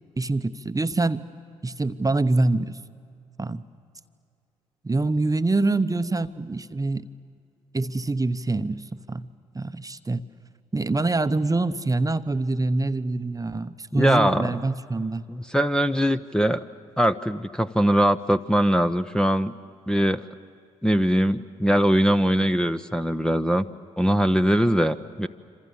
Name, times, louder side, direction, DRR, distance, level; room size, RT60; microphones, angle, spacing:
voice 1, 0.2-1.3 1.6-2.8 3.4-3.6 4.8-7.1 7.7-9.3 9.5-10.2 10.7-15.2, right 2 dB, 20° right, 11 dB, 1.0 m, -25 dB
voice 2, 13.9-14.6 15.3-16.6 17.0-19.5 19.9-20.2 20.8-23.6 24.0-25.3, equal, 5° left, 6 dB, 0.8 m, -21 dB
27.0 x 26.5 x 7.2 m, 2.4 s
hypercardioid pair, 40°, 16 cm